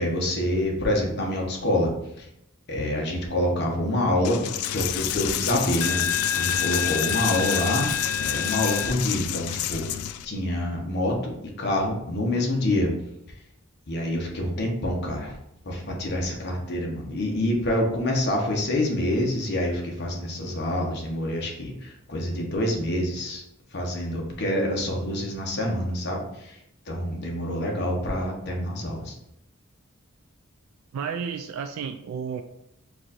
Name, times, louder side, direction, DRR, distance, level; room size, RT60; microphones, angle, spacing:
voice 1, 0.0-1.9 2.2-2.3 2.7-4.4 4.7-6.0 6.4-7.9 8.2-12.9 13.9-15.3 15.6-23.4 23.7-26.6 26.9-29.1, left 1 dB, 50° left, 0 dB, 1.0 m, -26 dB
Coin (dropping), 4.2-10.3, left 9 dB, 80° left, 0.3 m, -27 dB
voice 2, 30.9-32.4, right 6 dB, 75° right, 6 dB, 0.3 m, -32 dB
4.6 x 2.6 x 4.1 m, 0.81 s
head